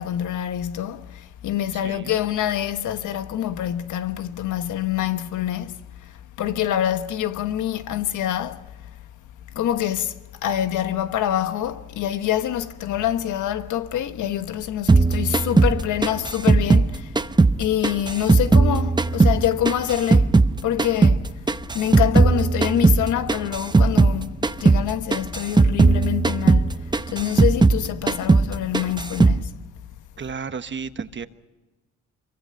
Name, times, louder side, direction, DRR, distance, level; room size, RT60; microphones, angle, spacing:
voice 1, 0.0-6.1 6.4-8.6 9.5-10.2 10.4-17.2 17.6-20.3 20.6-21.3 21.7-29.5, left 11 dB, 80° left, 1.3 m, -26 dB
voice 2, 1.8-2.2 30.2-31.3, right 6 dB, 40° right, 1.3 m, -32 dB
sound 1, 14.9-17.6 17.8-20.5 20.8-24.2 24.4-24.8 25.1-27.8 28.1-28.5 28.7-29.4, right 3 dB, 15° right, 0.7 m, -17 dB
25.5 x 23.5 x 5.8 m
cardioid pair, 90°, 30 cm